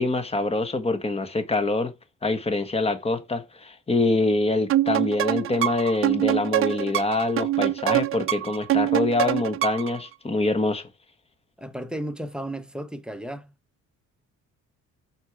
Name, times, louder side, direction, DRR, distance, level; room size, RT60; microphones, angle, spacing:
voice 1, 0.0-1.9 2.2-10.8, left 2 dB, 20° left, 1.3 m, -25 dB
sound 1, 4.7-10.0, right 14 dB, 45° right, 0.4 m, -24 dB
voice 2, 11.6-13.5, right 1 dB, 5° right, 0.8 m, -34 dB
6.4 x 4.4 x 4.6 m
cardioid pair, 110°, 31 cm